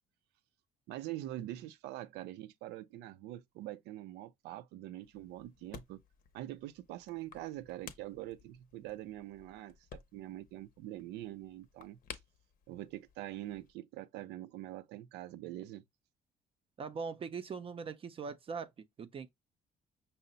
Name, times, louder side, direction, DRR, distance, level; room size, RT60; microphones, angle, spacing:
voice 1, 0.9-6.0 6.3-12.0 12.7-15.8, right 15 dB, 90° right, 0.4 m, -44 dB
sound 1, 5.0-13.7, left 7 dB, 55° left, 0.7 m, -55 dB
voice 2, 16.8-19.3, right 5 dB, 35° right, 0.4 m, -41 dB
5.6 x 2.0 x 3.8 m
cardioid pair, 110°, 17 cm